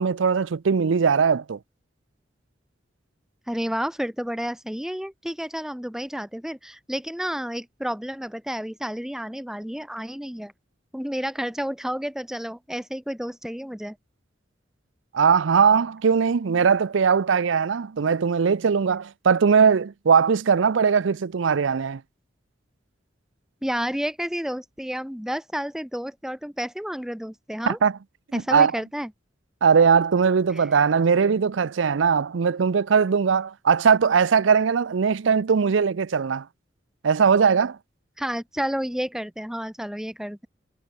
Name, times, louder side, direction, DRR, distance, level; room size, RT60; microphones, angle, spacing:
voice 1, 0.0-1.6 15.1-22.0 27.7-27.9 28.3-28.7 29.6-36.4 37.0-37.8, right 6 dB, 90° right, 0.5 m, -20 dB
voice 2, 3.5-10.5 10.9-14.0 23.6-27.8 28.3-29.1 30.5-30.7 38.2-40.5, equal, 5° right, 0.8 m, -30 dB
head